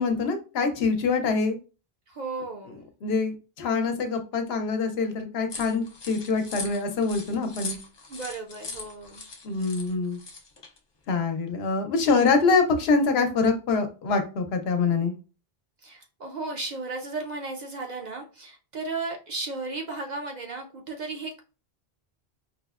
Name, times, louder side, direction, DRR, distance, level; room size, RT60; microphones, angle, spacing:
voice 1, 0.0-1.6 3.0-7.8 9.4-10.2 11.1-15.1, left 4 dB, 75° left, 5 dB, 0.9 m, -25 dB
voice 2, 2.1-2.8 8.1-9.3 15.8-21.4, right 3 dB, 55° right, 2 dB, 0.6 m, -35 dB
sound 1, 5.5-10.8, left 4 dB, 45° left, 0.3 m, -40 dB
4.9 x 2.1 x 2.3 m, 0.33 s
omnidirectional pair, 1.1 m